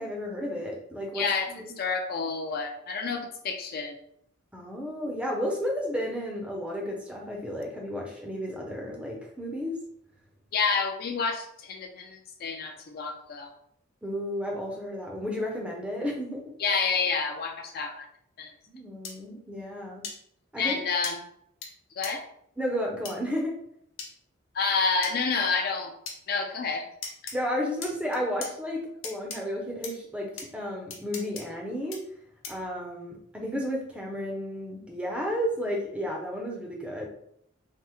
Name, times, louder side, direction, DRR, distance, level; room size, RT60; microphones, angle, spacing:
voice 1, 0.0-1.6 4.5-9.8 14.0-16.5 18.7-20.0 20.5-20.8 22.6-23.5 27.3-32.0 32.5-37.1, equal, 5° right, -1 dB, 0.5 m, -32 dB
voice 2, 1.1-1.5 1.8-4.0 10.5-13.5 16.6-18.1 18.4-18.5 20.6-21.2 22.0-22.2 24.5-25.9 26.3-26.9, left 5 dB, 45° left, 3 dB, 0.4 m, -29 dB
sound 1, 19.0-19.1 20.0-20.2 21.0-21.1 21.6-21.7 22.0-22.1 23.0-23.1 24.0-24.1 25.0-25.1 26.1-26.2 27.0-27.3 27.8-28.5 29.0-29.4 29.8-29.9 30.4-30.5 30.9-31.4 31.9-32.0 32.4-32.7, left 5 dB, 75° left, 0.7 m, -37 dB
3.3 x 2.0 x 3.0 m, 0.70 s
head